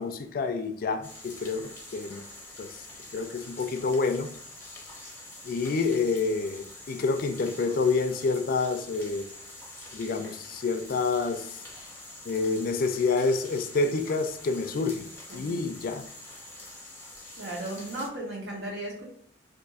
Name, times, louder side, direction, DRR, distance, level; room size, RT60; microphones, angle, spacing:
voice 1, 0.0-2.2 2.6-2.8 3.1-4.3 5.4-9.3 9.9-11.6 12.3-15.1 15.3-16.0, left 4 dB, 55° left, 9 dB, 0.4 m, -28 dB
sound 1, 1.0-18.1, left 2 dB, 15° left, 0.7 m, -45 dB
voice 2, 17.4-19.0, right 1 dB, 75° right, -3 dB, 0.9 m, -35 dB
2.5 x 2.4 x 3.9 m, 0.65 s
head